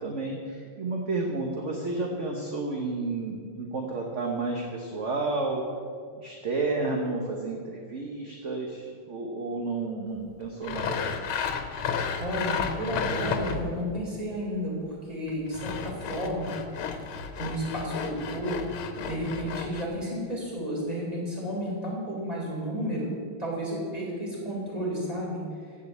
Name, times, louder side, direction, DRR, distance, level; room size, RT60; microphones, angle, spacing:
voice 1, 0.0-5.6 6.2-11.3, right 3 dB, 40° right, 1 dB, 1.3 m, -31 dB
Sawing, 10.6-13.8 15.3-19.8, left 6 dB, 80° left, 1.8 m, -32 dB
voice 2, 12.2-16.6 17.4-23.1 23.4-25.4, equal, 15° right, -5 dB, 4.0 m, -32 dB
15.5 x 5.5 x 8.2 m, 2.1 s
omnidirectional pair, 2.2 m